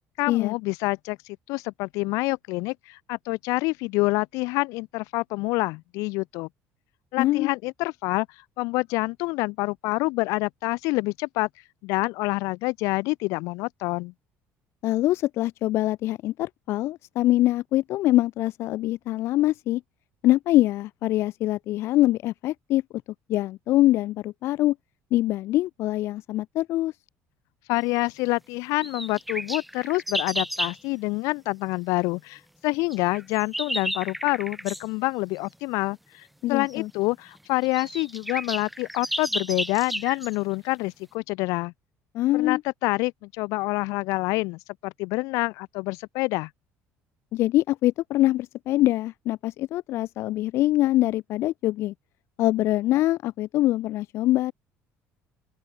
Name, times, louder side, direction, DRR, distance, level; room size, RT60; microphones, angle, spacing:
voice 1, 0.2-1.2 1.5-6.5 7.1-8.3 8.6-11.5 11.8-14.1 27.7-41.7 42.3-46.5, left 24 dB, 80° left, 5.9 m, -27 dB
voice 2, 7.2-7.5 14.8-19.8 20.2-22.8 23.3-24.7 25.1-26.9 36.4-36.9 42.1-42.6 47.3-51.9 52.4-54.5, left 15 dB, 55° left, 2.6 m, -24 dB
sound 1, 28.8-30.8 32.9-34.9 36.7-36.8 37.4-37.5 37.6-40.4, equal, ahead, 4.0 m, -32 dB
open air
cardioid pair, 180°, 5 cm